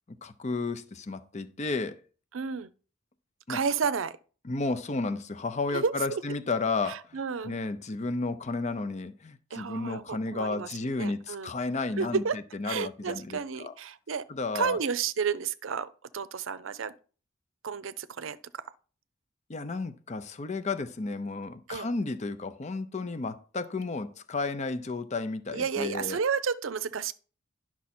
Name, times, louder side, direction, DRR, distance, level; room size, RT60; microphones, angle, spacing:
voice 1, 0.2-2.0 3.5-3.6 4.4-12.2 12.5-13.7 14.3-14.8 19.5-26.2, left 3 dB, 35° left, 0.6 m, -32 dB
voice 2, 2.3-2.7 3.5-4.2 5.7-6.2 6.8-7.5 9.5-10.7 11.0-11.5 12.0-12.4 12.6-14.3 14.5-16.9 17.6-18.6 21.7-21.9 25.5-27.1, right 6 dB, 80° right, 0.5 m, -31 dB
10.5 x 6.1 x 4.3 m
head